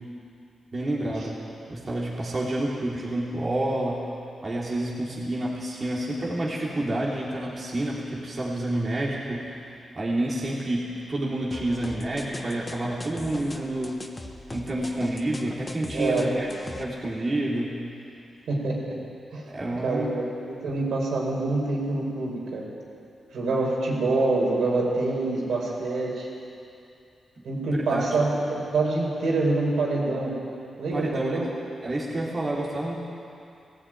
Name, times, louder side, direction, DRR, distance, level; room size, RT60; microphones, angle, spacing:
voice 1, 0.7-1.4 1.7-4.1 4.4-14.0 14.5-17.8 19.5-20.1 27.4-27.5 27.8-28.2 30.9-31.4 31.8-32.9, right 1 dB, 35° right, -5 dB, 3.0 m, -29 dB
sound 1, 11.5-16.8, left 2 dB, 15° left, 1.2 m, -40 dB
voice 2, 15.9-16.3 18.5-19.0 19.3-19.5 19.8-22.6 23.3-26.3 27.4-30.4 30.8-31.5, right 2 dB, 85° right, -3 dB, 5.2 m, -26 dB
18.0 x 16.0 x 9.2 m, 2.6 s
wide cardioid pair, 125°, 0 cm